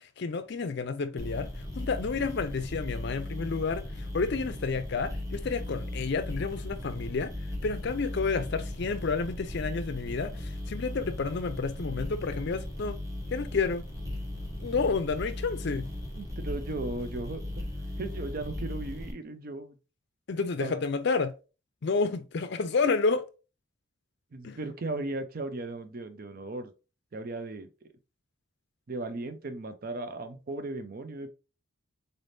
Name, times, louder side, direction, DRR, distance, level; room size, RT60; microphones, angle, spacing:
voice 1, 0.2-1.5 1.8-3.8 4.1-7.3 7.6-13.0 13.3-13.8 14.6-15.9 20.3-21.3 21.8-23.3 24.4-24.6, left 4 dB, 50° left, 0.5 m, -30 dB
sound 1, 1.2-19.1, left 1 dB, 15° right, 0.9 m, -37 dB
voice 2, 16.2-17.6 18.0-19.8 20.6-20.8 24.3-26.7 27.1-27.7 28.9-31.3, right 2 dB, 45° right, 0.5 m, -36 dB
4.0 x 3.4 x 2.6 m
head